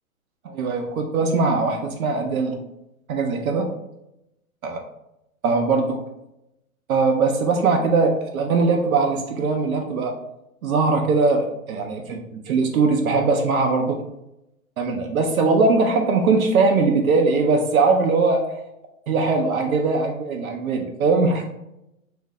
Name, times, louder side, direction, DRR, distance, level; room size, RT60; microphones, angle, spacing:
voice 1, 0.4-2.6 3.1-3.7 4.6-4.8 5.4-6.0 6.9-10.1 10.6-12.2 12.5-14.0 14.8-18.6 19.1-21.5, right 4 dB, 80° right, 3 dB, 0.6 m, -20 dB
2.6 x 2.1 x 3.6 m, 0.86 s
hypercardioid pair, 120°, 42 cm